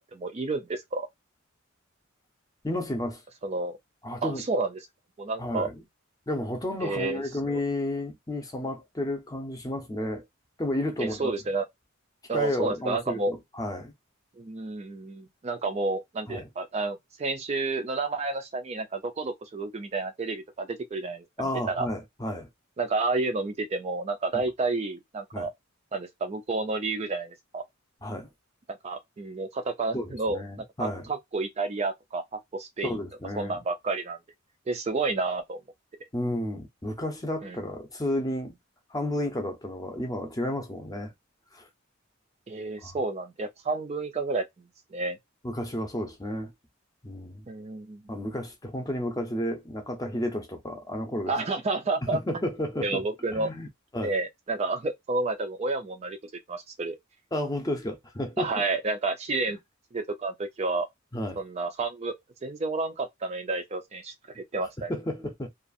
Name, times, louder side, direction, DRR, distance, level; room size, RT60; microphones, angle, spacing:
voice 1, 0.1-1.1 3.4-3.8 4.2-4.8 5.2-5.7 6.8-7.6 11.0-11.7 12.3-13.3 14.4-21.3 21.7-21.9 22.8-25.5 25.9-27.6 28.7-30.4 30.8-33.0 33.4-34.2 34.7-35.6 37.4-37.6 42.5-45.2 47.5-48.0 51.3-52.2 52.8-53.5 54.0-56.2 56.5-57.0 58.4-59.6 59.9-60.9 61.4-62.1 62.4-64.9, right 3 dB, 30° right, 0.4 m, -30 dB
voice 2, 2.6-3.2 4.0-4.4 5.4-5.8 6.3-10.2 10.6-11.3 12.3-13.9 16.3-16.5 21.4-22.5 24.3-24.4 25.3-25.5 28.0-28.3 29.9-31.1 32.8-33.6 36.1-38.6 38.9-41.1 41.5-41.7 42.8-43.0 45.4-46.5 47.0-47.5 48.1-51.3 52.0-53.0 53.3-53.7 53.9-54.1 57.3-58.6 59.5-59.6 61.1-61.4 64.9-65.5, left 1 dB, 15° left, 0.6 m, -32 dB
2.6 x 2.4 x 2.4 m
head